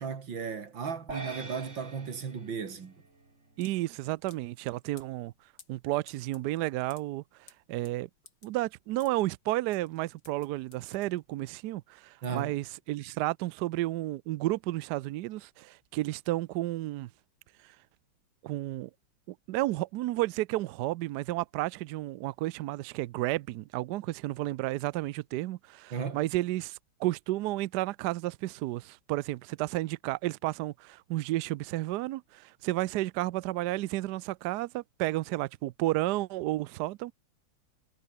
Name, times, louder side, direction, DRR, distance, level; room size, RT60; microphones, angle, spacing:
voice 1, 0.0-2.9 12.2-12.5 25.9-26.2, right 6 dB, 65° right, 3.1 m, -35 dB
sound 1, 1.1-3.6, right 3 dB, 35° right, 3.6 m, -44 dB
sound 2, 1.7-11.6, left 4 dB, 50° left, 3.4 m, -59 dB
voice 2, 3.6-5.3 5.7-7.2 7.7-8.1 8.4-17.1 18.4-18.9 19.5-37.1, right 17 dB, 80° right, 0.9 m, -32 dB
omnidirectional pair, 2.3 m